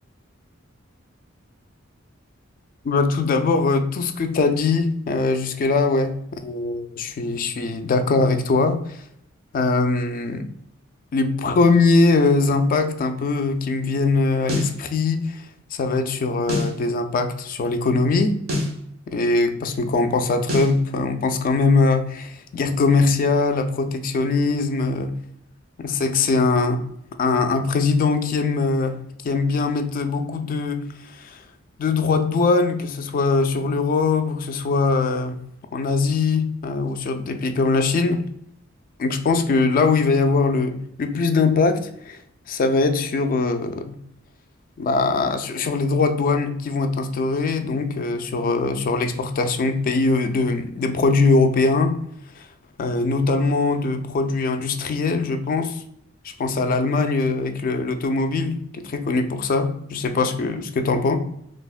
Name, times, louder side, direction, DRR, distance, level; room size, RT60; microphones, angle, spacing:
voice 1, 2.8-9.0 9.5-10.5 11.1-15.4 15.7-18.4 19.1-25.1 25.8-26.8 27.2-29.0 29.2-31.4 31.8-35.4 35.7-38.3 39.0-42.2 42.5-44.0 44.8-52.0 52.4-52.5 52.8-55.8 56.4-61.2, left 3 dB, 45° left, 7 dB, 0.3 m, -21 dB
sound 1, 14.5-14.8 16.5-16.8 18.5-18.8 20.5-20.8, left 1 dB, 85° right, 0.8 m, -25 dB
3.3 x 2.1 x 2.3 m, 0.72 s
head